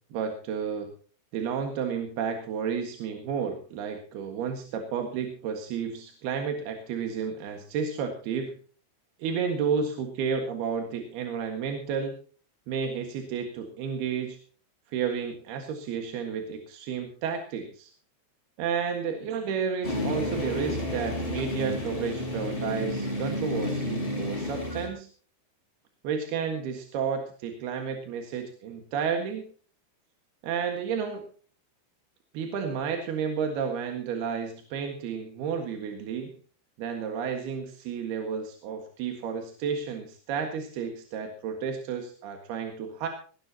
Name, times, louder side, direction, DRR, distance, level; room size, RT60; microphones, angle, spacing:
voice 1, 0.1-0.9 1.3-8.5 9.2-12.2 12.7-14.4 14.9-17.9 18.6-25.1 26.0-29.5 30.4-31.2 32.3-36.3 36.8-43.1, right 6 dB, 60° right, 4 dB, 3.2 m, -31 dB
sound 1, 19.8-24.9, left 1 dB, 10° left, 4.7 m, -31 dB
19.0 x 18.5 x 2.9 m, 0.40 s
omnidirectional pair, 6.0 m